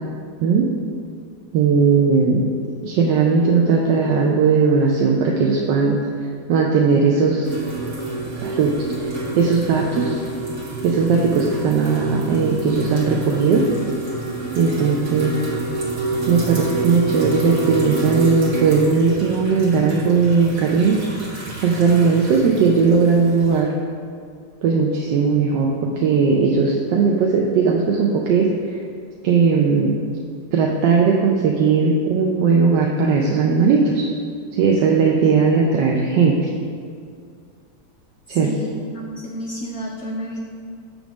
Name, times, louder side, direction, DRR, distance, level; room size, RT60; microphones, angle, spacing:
voice 1, 1.5-2.4 2.8-6.0 6.5-7.5 8.4-10.2 10.8-13.6 14.5-15.4 16.3-21.0 21.3-23.7 24.6-25.7 26.0-28.8 29.2-29.9 30.5-34.1 34.5-36.5 38.3-38.5, right 5 dB, 75° right, -1 dB, 1.2 m, -18 dB
sound 1, 7.4-23.6, right 2 dB, 45° right, 1.4 m, -28 dB
voice 2, 38.4-40.4, equal, 80° left, 0 dB, 0.7 m, -31 dB
6.3 x 3.4 x 6.0 m, 2.2 s
omnidirectional pair, 2.1 m